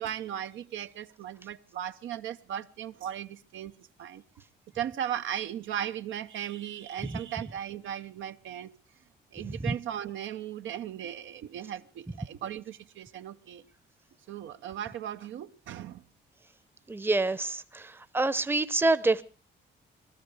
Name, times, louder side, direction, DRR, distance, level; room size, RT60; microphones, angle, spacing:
voice 1, 0.0-3.7 4.0-4.2 4.7-8.8 9.3-13.6 14.3-16.0, right 10 dB, 75° right, 0.7 m, -37 dB
voice 2, 16.9-19.2, right 2 dB, 10° right, 0.7 m, -27 dB
20.5 x 13.0 x 4.8 m
cardioid pair, 90°, 20 cm